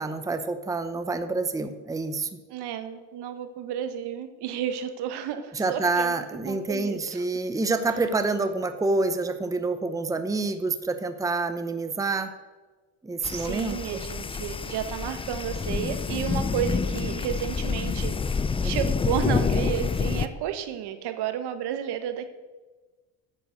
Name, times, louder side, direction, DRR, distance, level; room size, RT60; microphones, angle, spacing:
voice 1, 0.0-2.4 5.5-12.3 13.0-13.8 18.6-18.9, right 3 dB, 10° right, 9 dB, 0.8 m, -27 dB
voice 2, 2.5-7.2 13.3-22.3, right 9 dB, 70° right, 10 dB, 1.2 m, -32 dB
sound 1, 13.2-20.3, left 5 dB, 15° left, 0.4 m, -28 dB
9.7 x 8.1 x 6.7 m, 1.2 s
supercardioid pair, 95°, 41 cm